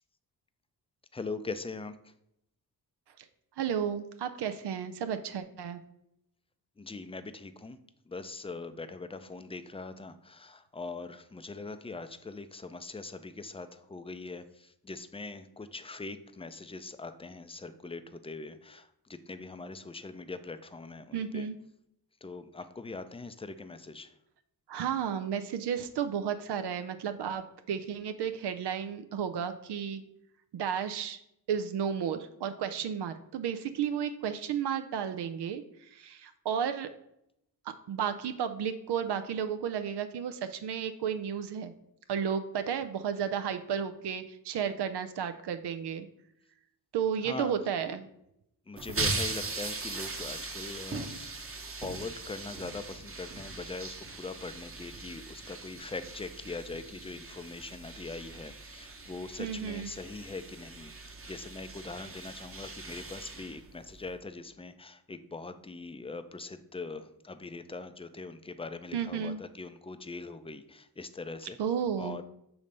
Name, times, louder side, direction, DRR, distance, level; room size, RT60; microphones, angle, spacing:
voice 1, 1.1-2.1 6.8-7.8 8.1-21.5 22.2-24.2 47.2-47.7 48.7-51.5 51.8-72.2, left 3 dB, 15° left, 10 dB, 0.4 m, -42 dB
voice 2, 3.6-5.8 21.1-21.6 24.7-30.0 30.5-31.2 31.5-36.9 37.9-41.7 42.1-46.1 46.9-48.1 59.4-59.9 68.9-69.4 71.6-72.2, right 8 dB, 85° right, 10 dB, 0.6 m, -33 dB
sound 1, 48.8-64.2, right 3 dB, 35° right, 1.0 m, -40 dB
7.0 x 3.2 x 5.1 m, 0.78 s
cardioid pair, 100°, 39 cm